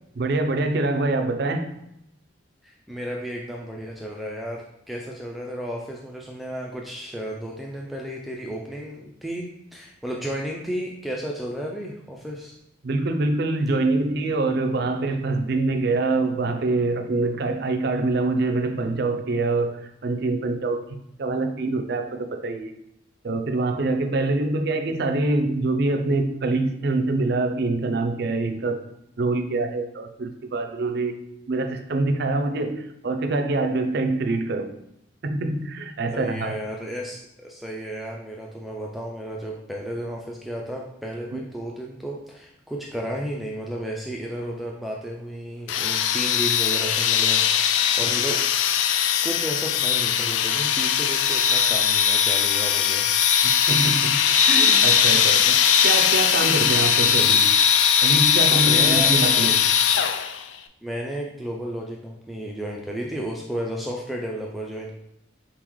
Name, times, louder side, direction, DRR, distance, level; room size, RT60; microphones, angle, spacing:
voice 1, 0.2-1.8 12.8-20.8 21.2-22.7 23.2-28.8 29.2-31.2 31.5-34.7 35.2-36.5 41.3-41.4 48.0-48.1 53.4-55.6 55.8-57.5 58.0-59.7 59.9-60.1, right 2 dB, 60° right, 6 dB, 0.5 m, -25 dB
voice 2, 2.6-12.5 36.1-48.4 49.2-53.1 58.6-59.1 60.8-64.9, equal, ahead, -2 dB, 0.3 m, -33 dB
sound 1, 45.7-60.4, left 8 dB, 80° left, 0.3 m, -20 dB
4.2 x 3.7 x 3.0 m, 0.79 s
head